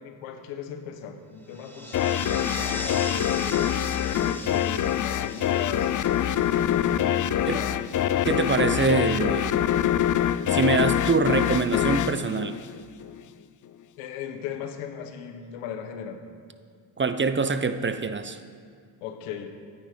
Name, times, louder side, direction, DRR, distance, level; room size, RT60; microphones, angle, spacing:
voice 1, 0.0-5.9 7.2-7.8 14.0-16.2 19.0-19.5, left 8 dB, 90° left, 6 dB, 1.6 m, -37 dB
sound 1, 1.5-7.3, left 1 dB, 5° left, 1.8 m, -39 dB
sound 2, 1.9-13.2, left 11 dB, 40° left, 0.5 m, -25 dB
voice 2, 8.2-9.6 10.5-12.6 17.0-18.4, right 4 dB, 25° right, 11 dB, 0.8 m, -24 dB
15.5 x 10.0 x 5.2 m, 2.2 s
cardioid pair, 85°, 49 cm